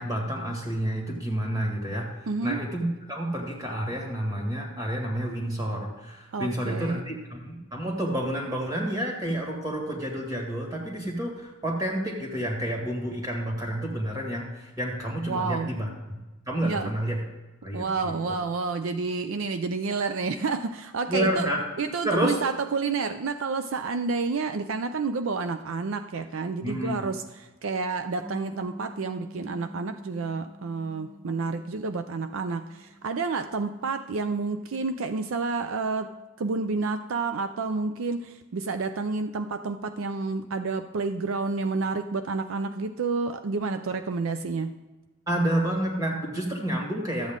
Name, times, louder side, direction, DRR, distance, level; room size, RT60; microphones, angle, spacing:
voice 1, 0.0-2.1 2.4-16.2 16.5-17.2 17.6-18.1 21.1-21.6 22.0-22.4 26.6-27.0 45.3-47.3, right 1 dB, 15° right, -1 dB, 2.0 m, -29 dB
voice 2, 2.3-2.6 6.3-7.0 15.3-15.7 16.6-16.9 17.7-21.5 21.8-27.2 27.6-36.1 36.4-44.7, right 4 dB, 65° right, 9 dB, 0.4 m, -29 dB
sound 1, 28.2-34.4, equal, 40° right, 3.3 m, -47 dB
13.0 x 8.2 x 3.6 m, 1.1 s
head